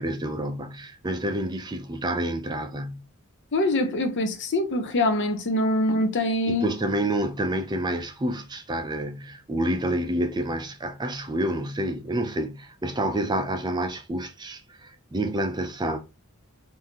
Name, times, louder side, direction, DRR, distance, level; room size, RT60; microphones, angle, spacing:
voice 1, 0.0-3.0 6.5-16.0, right 1 dB, 20° right, 0.5 m, -28 dB
voice 2, 3.5-6.6, left 1 dB, 55° left, 0.6 m, -24 dB
3.7 x 2.7 x 2.9 m
head